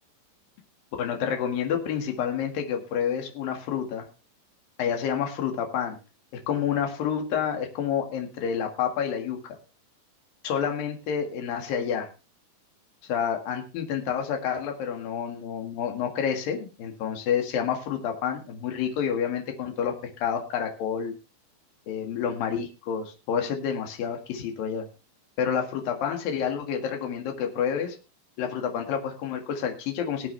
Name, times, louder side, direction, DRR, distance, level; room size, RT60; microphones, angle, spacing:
voice 1, 1.0-4.1 4.8-6.0 6.5-9.4 10.4-12.1 13.1-21.1 21.9-24.9 25.4-28.0 28.4-30.3, left 8 dB, 75° left, 4 dB, 3.6 m, -29 dB
20.0 x 8.7 x 3.3 m, 0.30 s
omnidirectional pair, 4.1 m